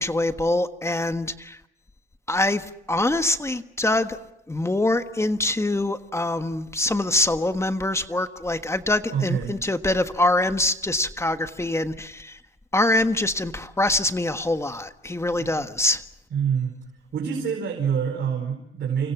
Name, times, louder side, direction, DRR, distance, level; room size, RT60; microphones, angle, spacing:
voice 1, 0.0-1.6 2.3-4.2 4.5-12.4 12.7-16.0, left 2 dB, 15° left, 8 dB, 1.5 m, -24 dB
voice 2, 9.1-9.5 15.4-15.7 16.3-16.7 17.1-19.1, right 7 dB, 60° right, 2 dB, 5.0 m, -26 dB
29.5 x 25.0 x 6.0 m, 0.81 s
cardioid pair, 90°, 20 cm